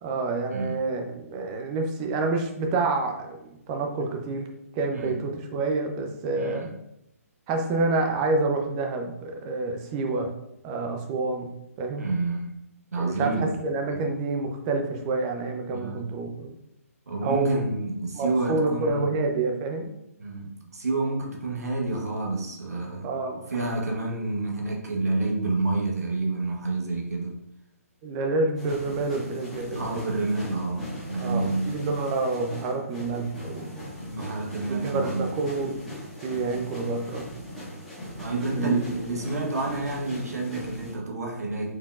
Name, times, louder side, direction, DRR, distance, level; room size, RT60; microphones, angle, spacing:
voice 1, 0.0-4.5 4.7-6.7 7.5-10.3 10.6-11.5 11.8-12.1 13.0-16.5 17.2-17.6 18.1-19.9 23.0-23.5 28.0-30.1 31.2-33.9 34.7-35.8 36.2-37.3 38.5-38.9, right 3 dB, 25° right, 3 dB, 0.6 m, -28 dB
voice 2, 6.4-6.7 12.0-12.6 12.9-13.5 13.9-14.0 15.7-16.0 17.1-19.1 20.2-23.2 23.5-27.4 29.7-31.7 34.1-35.3 38.2-41.8, right 2 dB, 80° right, 0 dB, 1.0 m, -29 dB
sound 1, 28.5-40.9, left 1 dB, ahead, 1.4 m, -39 dB
4.7 x 3.6 x 2.4 m, 0.84 s
hypercardioid pair, 145°, 8 cm